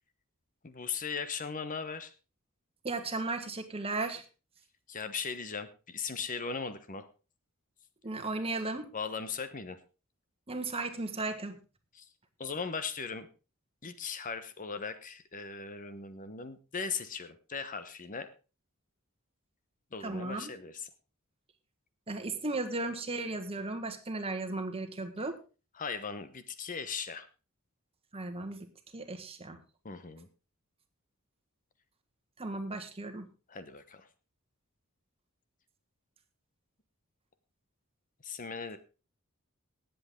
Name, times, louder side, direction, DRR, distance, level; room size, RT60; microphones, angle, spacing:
voice 1, 0.6-2.1 4.9-7.1 8.9-9.8 11.9-12.1 12.4-13.3 13.8-18.3 19.9-20.9 25.8-27.3 29.8-30.3 33.5-34.1 38.2-38.8, left 5 dB, 40° left, 11 dB, 1.0 m, -38 dB
voice 2, 2.8-4.2 8.0-8.9 10.5-11.6 20.0-20.5 22.1-25.4 28.1-28.7 28.9-29.6 32.4-33.3, right 2 dB, 25° right, 7 dB, 1.5 m, -35 dB
19.0 x 8.0 x 3.7 m, 0.33 s
head